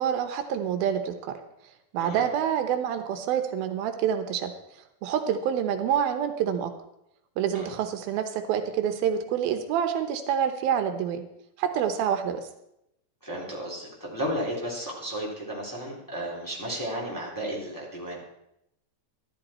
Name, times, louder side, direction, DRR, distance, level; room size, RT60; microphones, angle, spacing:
voice 1, 0.0-1.4 1.9-4.5 5.0-6.7 7.4-11.2 11.6-12.4, right 8 dB, 85° right, 8 dB, 2.8 m, -27 dB
voice 2, 13.2-18.2, equal, 5° left, -4 dB, 2.8 m, -33 dB
13.5 x 11.5 x 4.3 m, 0.82 s
omnidirectional pair, 4.2 m